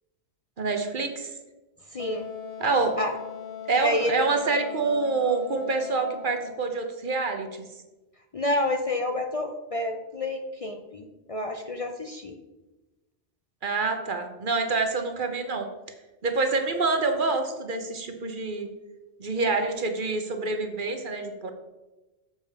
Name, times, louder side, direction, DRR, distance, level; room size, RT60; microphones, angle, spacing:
voice 1, 0.6-1.3 2.6-3.0 3.7-7.6 13.6-15.7 16.2-18.7 19.2-21.5, right 3 dB, 50° right, 6 dB, 1.0 m, -27 dB
voice 2, 1.9-2.2 3.0-3.1 3.8-4.1 8.3-12.3, left 1 dB, 40° left, 4 dB, 0.5 m, -29 dB
Wind instrument woodwind instrument, 2.0-6.7, left 6 dB, 65° left, 1.2 m, -40 dB
7.3 x 5.2 x 5.6 m, 1.1 s
omnidirectional pair, 1.1 m